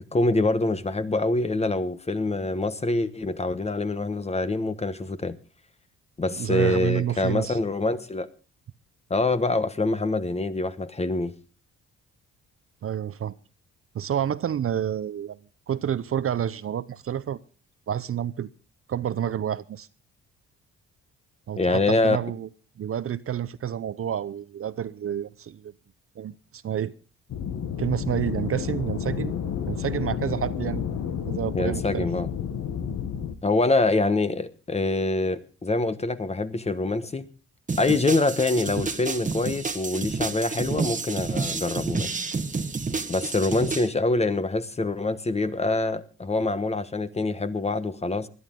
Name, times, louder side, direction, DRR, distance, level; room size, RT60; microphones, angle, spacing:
voice 1, 0.1-5.4 6.2-8.3 9.1-11.3 21.6-22.2 31.5-32.3 33.4-37.3 37.8-42.2 43.1-48.3, left 2 dB, 20° left, 1.2 m, -25 dB
voice 2, 6.3-7.6 12.8-13.3 13.9-15.4 15.7-17.4 17.9-18.5 18.9-19.9 21.5-22.5 22.8-25.7 26.2-26.9 27.8-29.3 29.7-31.0 31.3-32.1, right 9 dB, 45° right, 0.7 m, -29 dB
sound 1, 27.3-33.3, left 8 dB, 70° left, 1.8 m, -30 dB
sound 2, 37.7-43.9, right 4 dB, 25° right, 1.4 m, -30 dB
20.5 x 12.0 x 3.8 m
cardioid pair, 90°, 30 cm